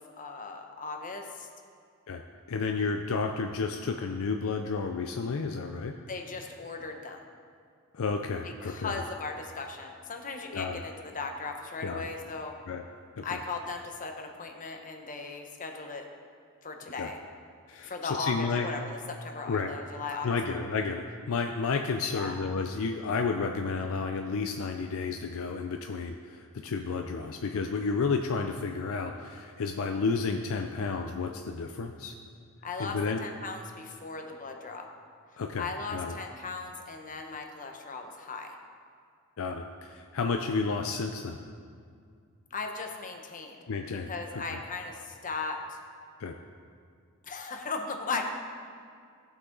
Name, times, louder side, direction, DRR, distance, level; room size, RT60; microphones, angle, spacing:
voice 1, 0.0-1.5 6.1-7.3 8.4-12.5 13.2-16.1 16.6-17.2 17.8-20.6 22.1-22.3 32.6-34.9 35.6-38.6 42.5-43.6 44.1-45.8 47.2-48.3, left 4 dB, 35° left, 3 dB, 1.0 m, -37 dB
voice 2, 2.5-5.9 7.9-9.0 10.5-10.8 11.8-12.0 12.7-12.8 13.2-13.4 17.0-17.1 17.7-18.7 19.5-19.7 20.2-32.1 32.8-33.2 35.4-36.2 39.4-41.4 43.7-44.1 44.5-44.6 46.2-46.3, left 4 dB, 65° left, 4 dB, 0.5 m, -31 dB
16.5 x 6.1 x 3.9 m, 2.3 s
head